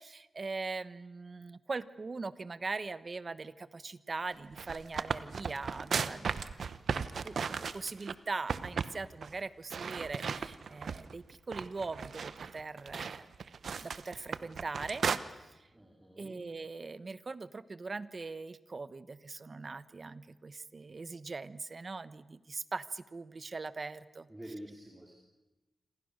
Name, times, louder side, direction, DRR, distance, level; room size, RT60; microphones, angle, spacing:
voice 1, 0.0-6.4 7.2-13.3 13.8-15.0 15.3-15.7 16.2-24.3, right 3 dB, 40° right, 14 dB, 1.1 m, -41 dB
sound 1, 4.4-8.1 8.5-9.0 9.2-9.3 9.7-11.1 11.5-15.2, right 6 dB, 70° right, 1.0 m, -36 dB
voice 2, 15.7-16.5 24.3-25.1, right 1 dB, 15° right, 0 dB, 3.6 m, -48 dB
28.0 x 26.5 x 6.6 m, 1.1 s
wide cardioid pair, 100°, 0 cm